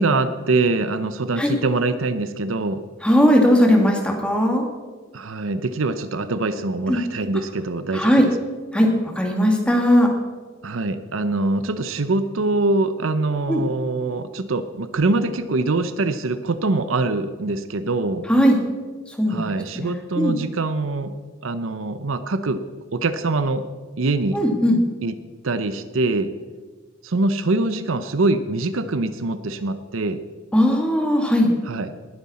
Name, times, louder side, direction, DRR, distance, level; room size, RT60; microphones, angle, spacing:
voice 1, 0.0-2.8 5.1-8.3 10.6-18.2 19.3-21.1 21.4-22.6 22.9-23.7 24.0-24.4 25.0-25.2 25.4-26.3 27.0-30.2 31.7-31.9, right 2 dB, 80° right, 11 dB, 0.7 m, -23 dB
voice 2, 3.0-4.6 6.9-7.0 7.9-8.3 8.7-10.1 13.5-13.6 18.3-18.6 19.2-19.4 19.7-20.4 24.3-24.8 30.5-31.5, equal, 5° left, 1 dB, 2.0 m, -18 dB
19.5 x 9.5 x 4.3 m, 1.3 s
head